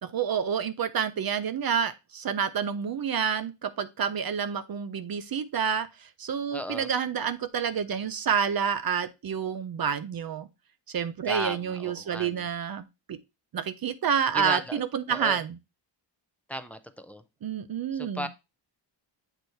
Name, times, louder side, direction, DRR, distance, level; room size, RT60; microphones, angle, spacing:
voice 1, 0.0-10.5 10.9-13.2 13.5-15.6 17.4-18.3, right 7 dB, 55° right, 0.5 m, -29 dB
voice 2, 6.5-6.9 11.3-12.4 14.3-14.8 15.1-15.4 16.5-17.2 17.9-18.3, equal, 5° left, 0.4 m, -35 dB
8.0 x 2.8 x 4.4 m
wide cardioid pair, 175°, 45 cm